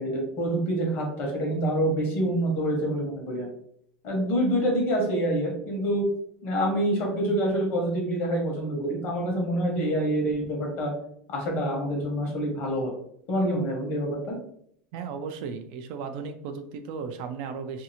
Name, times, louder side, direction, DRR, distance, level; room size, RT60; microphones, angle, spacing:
voice 1, 0.0-3.5 4.0-6.1 6.4-10.9 11.3-12.9 13.3-14.4, right 1 dB, 45° left, 0 dB, 1.0 m, -26 dB
voice 2, 14.9-17.8, right 5 dB, 55° right, 7 dB, 0.3 m, -35 dB
2.7 x 2.4 x 2.7 m, 0.67 s
supercardioid pair, 165°, 5 cm